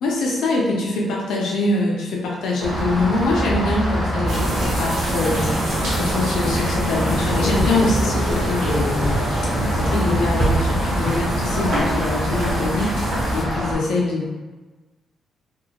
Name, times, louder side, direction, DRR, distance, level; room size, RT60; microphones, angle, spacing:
voice 1, 0.0-9.2 9.6-12.9 13.3-14.3, left 2 dB, 80° left, -2 dB, 0.5 m, -24 dB
Rain, 2.6-13.7, equal, ahead, 0.9 m, -24 dB
sound 1, 4.3-13.4, right 1 dB, 65° right, 0.9 m, -26 dB
2.7 x 2.6 x 2.8 m, 1.2 s
cardioid pair, 175°, 0 cm